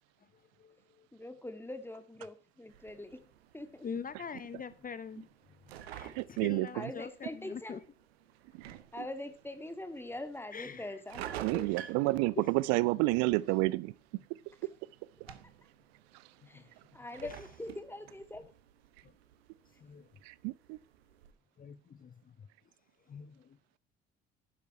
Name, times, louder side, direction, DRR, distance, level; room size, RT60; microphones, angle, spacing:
voice 1, 0.3-1.1 3.8-5.3 5.6-7.8 8.7-8.8 10.5-11.0 11.5-11.9 16.4-16.7 17.2-17.4 19.0-19.1 19.8-20.1 21.6-22.5 23.1-23.6, left 6 dB, 25° left, 0.9 m, -45 dB
voice 2, 1.1-3.2 3.5-3.9 6.7-7.8 8.9-11.3 15.3-15.4 16.5-18.4, left 1 dB, 5° left, 2.0 m, -43 dB
sound 1, 2.7-21.3, right 11 dB, 70° right, 1.1 m, -51 dB
voice 3, 6.1-6.9 8.5-8.8 11.4-13.9 16.1-16.2 20.2-20.8, right 21 dB, 55° right, 0.5 m, -30 dB
12.0 x 10.0 x 4.3 m
figure-of-eight pair, 50°, 32 cm